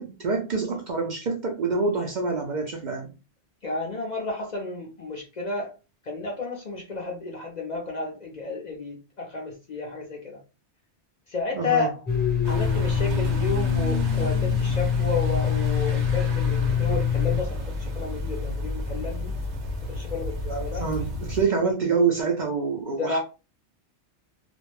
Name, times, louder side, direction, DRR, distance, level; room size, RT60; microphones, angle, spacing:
voice 1, 0.0-3.1 11.5-11.9 20.5-23.2, right 4 dB, 55° right, 2 dB, 0.6 m, -26 dB
voice 2, 3.6-5.7 6.1-10.4 11.3-11.9 12.5-19.3 19.9-20.9 23.0-23.2, left 3 dB, 50° left, 0 dB, 0.6 m, -31 dB
Domestic sounds home sounds, 12.1-17.4, left 7 dB, 10° left, 0.7 m, -24 dB
sound 1, 12.4-21.4, left 1 dB, 80° right, 1.0 m, -32 dB
2.4 x 2.1 x 3.1 m, 0.31 s
omnidirectional pair, 1.1 m